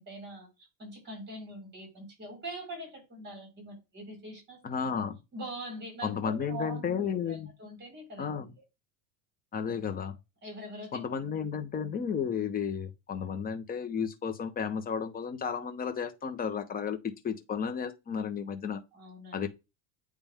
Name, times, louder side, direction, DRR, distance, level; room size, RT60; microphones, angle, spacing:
voice 1, 0.0-4.6 5.3-8.3 10.4-11.0 18.9-19.3, right 1 dB, 25° right, 4.4 m, -43 dB
voice 2, 4.6-5.2 6.0-7.5 8.2-8.5 9.5-10.2 10.9-17.0 17.2-18.8 19.3-19.5, left 7 dB, 20° left, 0.9 m, -33 dB
8.7 x 3.4 x 3.5 m
cardioid pair, 145°, 41 cm